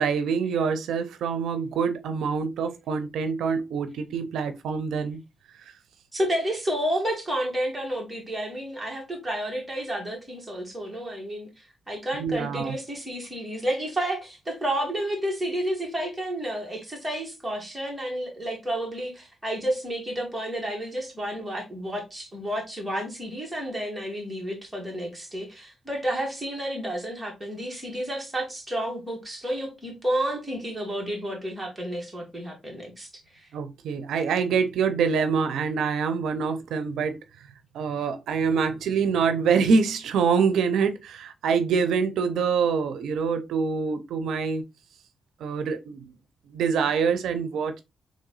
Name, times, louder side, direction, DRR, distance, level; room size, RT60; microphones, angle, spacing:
voice 1, 0.0-5.2 5.6-5.7 12.2-12.8 33.5-37.2 37.7-44.6 45.4-46.1 46.5-47.8, right 6 dB, 90° right, 0.5 m, -25 dB
voice 2, 6.1-11.5 11.9-33.1 33.3-33.5, right 1 dB, 10° right, 2.1 m, -31 dB
3.8 x 3.3 x 3.8 m
cardioid pair, 100°, 0 cm